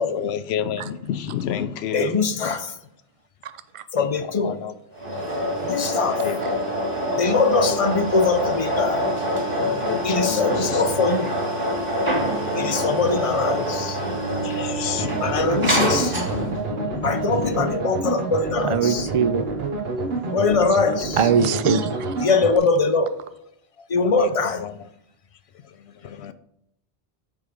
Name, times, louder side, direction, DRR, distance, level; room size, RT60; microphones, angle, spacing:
voice 1, 0.0-2.5 4.0-4.1 4.4-4.7 6.2-6.7 7.1-7.9 9.8-10.8 14.4-15.2 16.8-17.7 24.2-24.8 26.0-26.3, left 9 dB, 80° left, 0.8 m, -30 dB
voice 2, 1.9-2.7 3.9-4.6 5.6-6.2 7.2-9.1 10.0-11.3 11.8-11.9 12.6-14.0 15.2-16.2 17.0-19.1 20.3-21.3 22.2-23.1 23.9-24.6, left 4 dB, 40° left, 0.6 m, -22 dB
voice 3, 3.4-3.8 18.6-19.4 21.2-22.1, right 6 dB, 45° right, 0.4 m, -22 dB
sound 1, 4.9-16.7, equal, 30° right, 2.3 m, -25 dB
sound 2, 15.0-22.6, right 3 dB, 70° right, 1.3 m, -28 dB
9.0 x 3.6 x 5.0 m
omnidirectional pair, 1.1 m